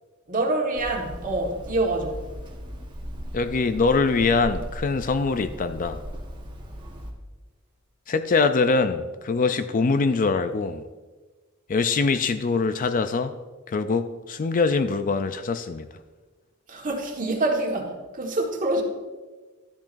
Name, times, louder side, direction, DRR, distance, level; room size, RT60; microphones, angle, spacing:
voice 1, 0.3-2.3 16.7-18.8, right 2 dB, 40° right, 0 dB, 1.5 m, -26 dB
Hammer, 0.7-7.1, equal, 20° right, 1.2 m, -38 dB
voice 2, 3.3-6.0 8.1-10.8 11.7-13.3 13.7-15.9, left 4 dB, 40° left, 10 dB, 0.4 m, -23 dB
13.0 x 10.5 x 2.6 m, 1.3 s
head